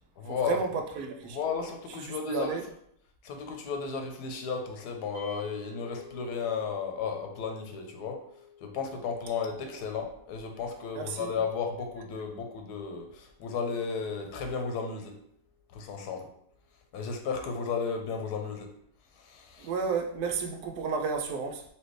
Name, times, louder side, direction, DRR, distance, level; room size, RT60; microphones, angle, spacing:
voice 1, 0.2-0.6 1.3-2.6 3.2-8.2 8.6-15.2 15.7-16.3 16.9-18.7 19.2-19.7, left 5 dB, 85° left, 4 dB, 1.2 m, -34 dB
voice 2, 1.0-1.4 2.0-2.6 10.9-11.3 19.6-21.7, right 5 dB, 85° right, 4 dB, 1.1 m, -32 dB
sound 1, 5.1-15.4, left 5 dB, 60° right, 1.3 m, -54 dB
4.2 x 2.9 x 3.1 m, 0.70 s
omnidirectional pair, 1.7 m